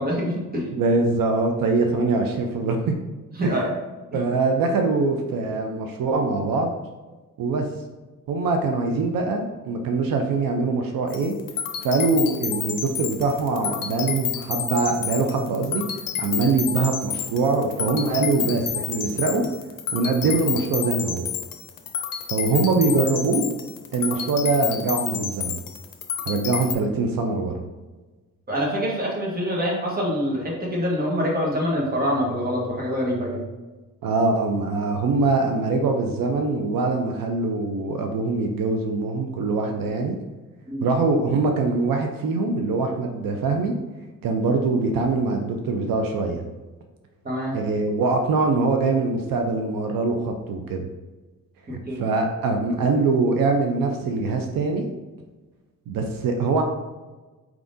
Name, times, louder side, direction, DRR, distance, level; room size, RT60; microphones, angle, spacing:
voice 1, 0.0-0.7 3.4-3.7 28.5-33.4 40.7-40.9 47.2-47.6 51.9-52.0, equal, 30° right, -4 dB, 1.3 m, -25 dB
voice 2, 0.7-2.9 3.4-3.5 4.1-6.7 7.4-7.7 8.3-11.3 11.8-15.8 16.2-19.4 19.9-21.3 22.3-23.5 23.9-25.6 26.3-27.6 34.0-40.2 40.8-43.7 44.2-46.4 47.5-50.8 52.0-54.8 55.9-56.6, right 3 dB, 85° right, 4 dB, 0.6 m, -23 dB
Robotic pattern, 11.1-26.7, left 8 dB, 80° left, 0.6 m, -30 dB
4.6 x 3.6 x 2.6 m, 1.2 s
wide cardioid pair, 125°, 33 cm